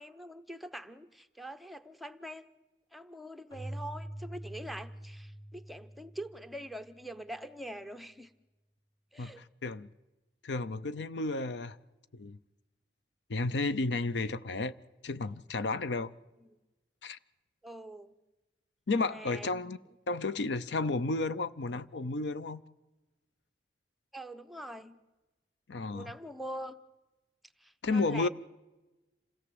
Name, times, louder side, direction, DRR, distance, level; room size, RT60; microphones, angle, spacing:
voice 1, 0.0-2.5 2.9-8.3 9.1-9.4 17.6-18.1 19.1-19.6 24.1-24.9 25.9-26.8 27.6-28.3, right 1 dB, ahead, 0.8 m, -44 dB
Keyboard (musical), 3.5-7.0, right 1 dB, 25° left, 2.1 m, -45 dB
voice 2, 9.2-9.9 10.4-11.8 12.1-12.4 13.3-14.7 15.0-16.1 17.0-17.2 18.9-19.8 20.1-22.6 25.7-26.1 27.8-28.3, left 3 dB, 75° left, 0.7 m, -32 dB
27.5 x 17.0 x 7.8 m
head